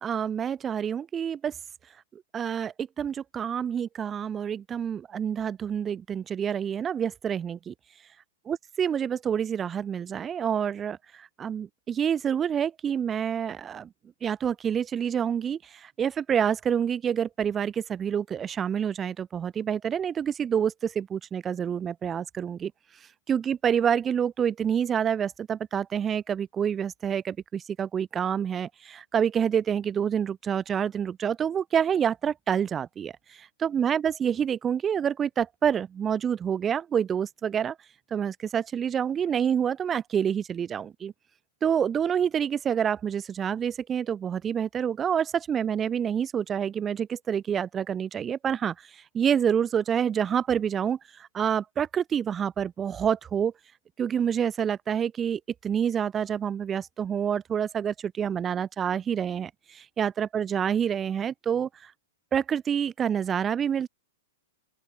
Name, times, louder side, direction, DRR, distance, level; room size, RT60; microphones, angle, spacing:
voice 1, 0.0-1.6 2.1-7.7 8.5-13.9 14.2-22.7 23.3-37.8 38.1-41.1 41.6-53.5 54.0-61.9 62.3-63.9, right 8 dB, 20° right, 0.3 m, -27 dB
open air
hypercardioid pair, 110°, 0 cm